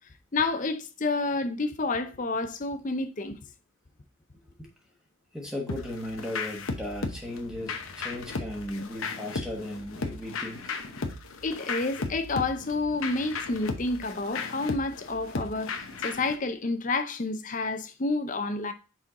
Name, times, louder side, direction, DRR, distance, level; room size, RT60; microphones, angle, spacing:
voice 1, 0.3-3.4 11.4-18.7, left 3 dB, 35° left, 0.6 m, -29 dB
voice 2, 5.3-10.8, left 1 dB, 5° right, 1.1 m, -36 dB
sound 1, 5.7-16.4, left 4 dB, 80° left, 0.9 m, -36 dB
5.8 x 4.5 x 3.7 m
head